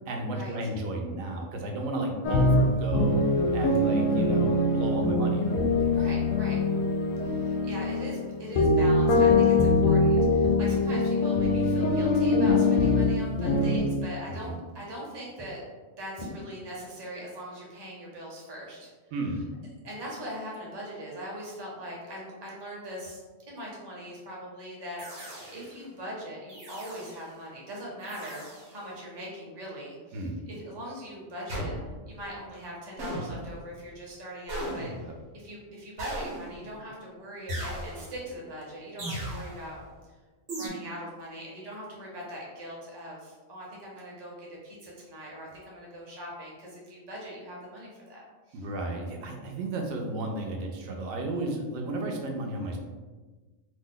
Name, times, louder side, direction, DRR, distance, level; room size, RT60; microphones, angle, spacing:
voice 1, 0.1-3.2 3.5-5.5 14.3-14.6 19.1-19.5 30.1-30.4 34.9-35.0 48.5-52.8, right 2 dB, 85° right, 2 dB, 1.0 m, -33 dB
sound 1, 2.2-13.8, left 2 dB, 80° left, 1.0 m, -23 dB
voice 2, 5.9-6.6 7.2-14.5 14.7-15.6 16.0-18.9 19.8-23.2 23.5-25.0 25.5-31.7 32.1-34.9 35.3-39.8 40.5-48.2 48.5-48.6, equal, 25° right, -4 dB, 0.6 m, -41 dB
sound 2, 25.0-25.8 26.5-27.3 28.0-28.8 31.5-32.2 33.0-33.7 34.5-35.2 36.0-36.8 37.5-38.3 39.0-39.7 40.5-40.7, right 1 dB, 60° right, 1.0 m, -37 dB
2.7 x 2.1 x 3.7 m, 1.3 s
omnidirectional pair, 1.4 m